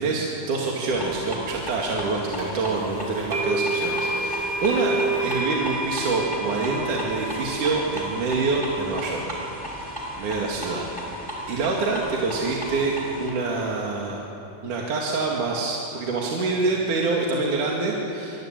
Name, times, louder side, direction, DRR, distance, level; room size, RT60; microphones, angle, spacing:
voice 1, 0.0-9.2 9.6-14.2 14.6-18.5, right 3 dB, 75° right, -2 dB, 3.8 m, -26 dB
sound 1, 0.9-13.3, equal, 5° right, 4.4 m, -36 dB
sound 2, 2.4-2.5 3.3-11.3, right 1 dB, 50° right, 6.6 m, -30 dB
25.5 x 23.0 x 9.0 m, 3.0 s
omnidirectional pair, 3.6 m